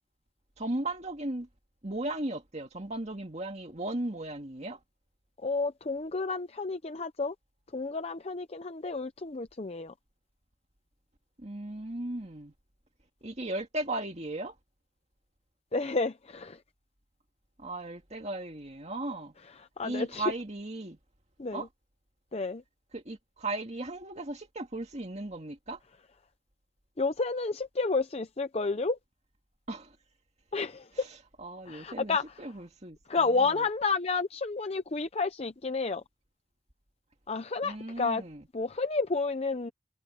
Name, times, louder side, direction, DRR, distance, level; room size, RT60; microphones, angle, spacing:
voice 1, 0.6-1.5 1.8-4.8 11.4-12.5 13.2-14.6 17.6-19.3 19.8-21.0 21.5-21.7 22.9-25.8 29.7-30.0 31.0-33.6 37.6-38.4, right 2 dB, 35° right, 2.1 m, -36 dB
voice 2, 5.4-7.3 7.7-9.9 15.7-16.6 19.8-20.3 21.4-21.6 22.3-22.6 27.0-29.0 30.5-31.1 31.7-32.4 33.1-36.0 37.3-38.2 38.5-39.7, left 3 dB, 30° left, 0.6 m, -30 dB
head